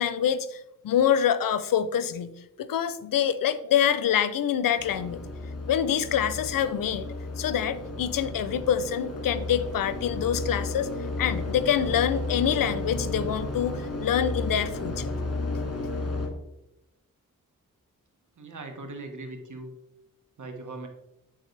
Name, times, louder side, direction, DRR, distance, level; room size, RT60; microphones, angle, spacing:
voice 1, 0.0-2.3 2.6-5.2 5.7-7.1 7.4-10.9 11.2-15.1, left 9 dB, 80° left, 14 dB, 0.5 m, -26 dB
sound 1, 4.8-16.3, left 2 dB, 45° left, 1.8 m, -33 dB
voice 2, 18.4-19.7 20.4-20.9, right 2 dB, 65° right, 4 dB, 1.3 m, -39 dB
9.3 x 3.9 x 3.2 m, 0.89 s
cardioid pair, 50°, 33 cm